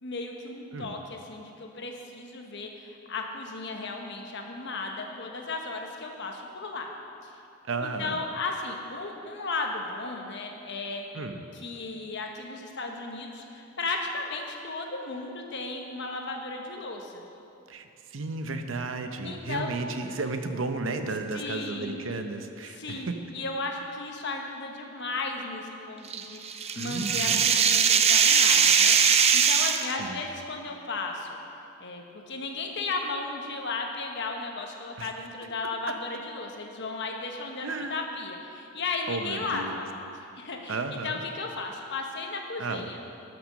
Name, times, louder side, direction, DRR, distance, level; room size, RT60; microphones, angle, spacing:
voice 1, 0.0-6.9 7.2-7.3 7.8-11.1 11.5-17.2 19.2-19.7 21.3-22.0 22.7-31.4 31.8-39.9 40.3-43.0, left 3 dB, 60° left, 2 dB, 1.1 m, -35 dB
voice 2, 7.7-8.2 11.1-11.4 17.7-23.1 26.8-27.4 30.0-30.2 35.0-35.1 37.6-37.9 39.1-39.9 40.7-41.2 42.6-42.9, right 3 dB, 70° right, 7 dB, 0.7 m, -33 dB
sound 1, 26.1-29.9, right 7 dB, 30° right, 0.4 m, -21 dB
11.5 x 6.1 x 6.5 m, 2.7 s
head